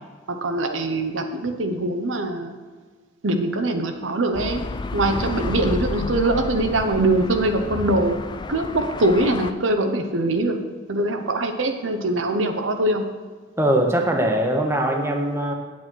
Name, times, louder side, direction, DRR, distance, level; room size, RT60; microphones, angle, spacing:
voice 1, 0.3-2.5 3.2-4.6 4.9-8.2 8.5-10.6 10.9-13.0, right 2 dB, 80° right, 5 dB, 0.9 m, -22 dB
sound 1, 4.3-9.5, left 3 dB, 25° left, 0.3 m, -30 dB
voice 2, 13.6-15.5, right 1 dB, 15° right, 2 dB, 0.9 m, -21 dB
8.5 x 8.4 x 4.6 m, 1.4 s
head